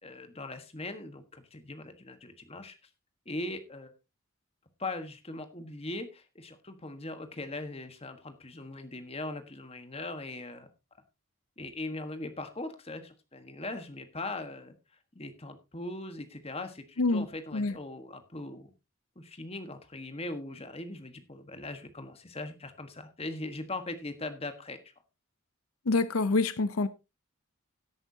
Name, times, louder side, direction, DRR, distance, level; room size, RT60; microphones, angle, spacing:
voice 1, 0.0-2.7 3.2-3.9 4.8-10.7 11.6-14.7 15.1-18.7 19.1-24.8, left 2 dB, 30° left, 1.4 m, -40 dB
voice 2, 25.9-26.9, left 3 dB, 80° left, 0.7 m, -26 dB
17.0 x 9.0 x 2.8 m
head